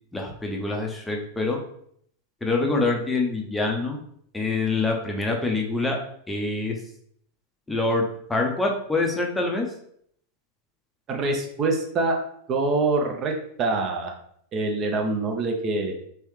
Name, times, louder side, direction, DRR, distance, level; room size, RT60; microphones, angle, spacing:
voice 1, 0.1-1.6 2.4-4.0 4.3-6.0 6.3-6.7 7.7-8.0 8.3-9.7, left 3 dB, 10° left, 1 dB, 0.6 m, -25 dB
voice 2, 11.1-12.2 12.5-14.1 14.5-15.9, right 3 dB, 30° right, 2 dB, 0.6 m, -25 dB
3.2 x 3.0 x 3.1 m, 0.66 s
figure-of-eight pair, 90°, 0 cm